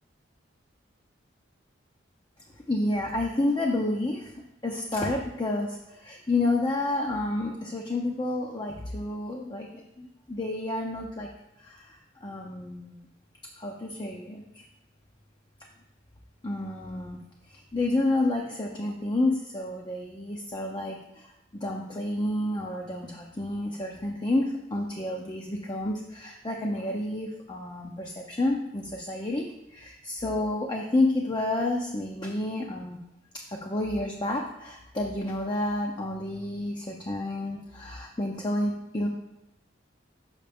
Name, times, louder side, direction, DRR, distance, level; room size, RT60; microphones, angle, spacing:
voice 1, 2.7-4.3 4.6-11.3 11.6-13.1 13.6-14.6 16.4-17.2 17.5-21.3 21.5-33.0 33.6-39.1, left 2 dB, 25° left, 0 dB, 0.5 m, -30 dB
6.5 x 5.8 x 3.4 m, 0.89 s
head